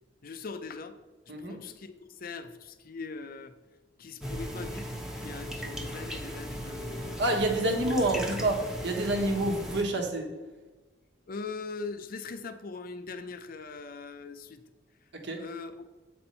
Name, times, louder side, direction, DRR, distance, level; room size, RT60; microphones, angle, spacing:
voice 1, 0.2-1.0 1.4-3.5 4.0-4.9 5.2-7.2 7.6-7.7 11.3-14.6 15.4-15.8, left 4 dB, 50° left, 10 dB, 0.6 m, -41 dB
sound 1, 4.2-9.8, equal, 5° right, 0.8 m, -37 dB
voice 2, 7.2-10.3 15.1-15.4, right 1 dB, 65° right, 3 dB, 1.2 m, -28 dB
7.9 x 4.3 x 5.3 m, 1.2 s
head